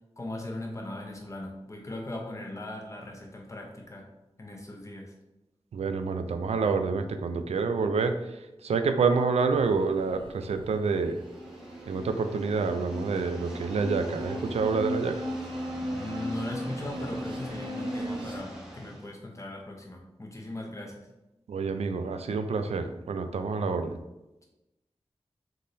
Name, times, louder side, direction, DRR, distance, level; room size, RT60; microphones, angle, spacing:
voice 1, 0.2-4.1 4.4-5.1 15.9-21.1, left 1 dB, 30° left, 0 dB, 0.9 m, -39 dB
voice 2, 5.7-8.2 8.6-11.2 11.9-15.2 21.5-24.0, right 4 dB, 90° right, 8 dB, 0.4 m, -27 dB
sound 1, 9.5-18.4, equal, 50° right, 0.6 m, -37 dB
sound 2, 11.1-19.1, equal, 5° right, 0.9 m, -44 dB
3.6 x 3.2 x 4.0 m, 0.98 s
wide cardioid pair, 90°, 11 cm